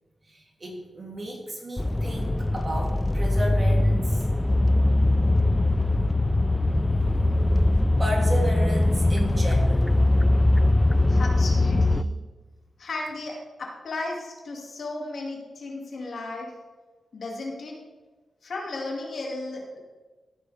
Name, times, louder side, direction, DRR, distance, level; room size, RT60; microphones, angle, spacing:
voice 1, 0.2-4.3 8.0-10.0, right 1 dB, 40° right, -1 dB, 2.9 m, -33 dB
sound 1, 1.8-12.0, left 2 dB, 15° left, 0.4 m, -21 dB
voice 2, 11.1-12.1 12.8-16.5 17.1-17.7 18.4-19.8, left 2 dB, 70° left, -1 dB, 2.3 m, -35 dB
15.0 x 6.2 x 3.5 m, 1.2 s
cardioid pair, 55°, 0 cm